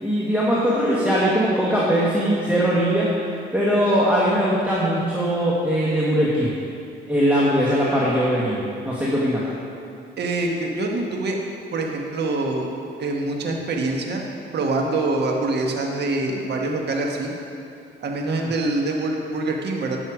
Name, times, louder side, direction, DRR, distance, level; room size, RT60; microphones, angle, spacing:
voice 1, 0.0-3.1 3.5-6.5 7.1-8.6 8.8-9.4 18.3-18.5, equal, 5° right, -7 dB, 1.4 m, -20 dB
voice 2, 10.2-11.4 11.7-12.7 13.0-14.2 14.5-17.3 18.0-20.0, right 2 dB, 60° right, 1 dB, 1.4 m, -25 dB
10.0 x 6.4 x 5.0 m, 2.6 s
cardioid pair, 90°, 20 cm